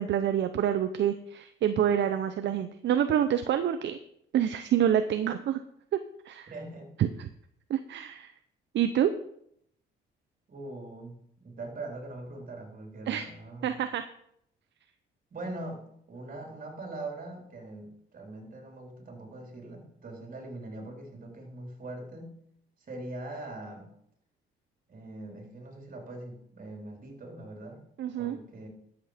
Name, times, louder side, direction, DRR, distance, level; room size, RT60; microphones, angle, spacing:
voice 1, 0.0-4.0 4.3-5.6 6.3-6.5 7.0-7.3 7.7-8.3 8.7-9.1 13.1-13.3 13.6-14.0 28.0-28.4, right 9 dB, 65° right, 9 dB, 0.7 m, -27 dB
voice 2, 6.5-6.9 10.5-13.8 15.3-22.4 22.8-23.9 24.9-27.8 28.1-28.7, right 2 dB, 45° right, 2 dB, 3.9 m, -42 dB
12.5 x 8.0 x 5.1 m, 0.72 s
cardioid pair, 90°, 20 cm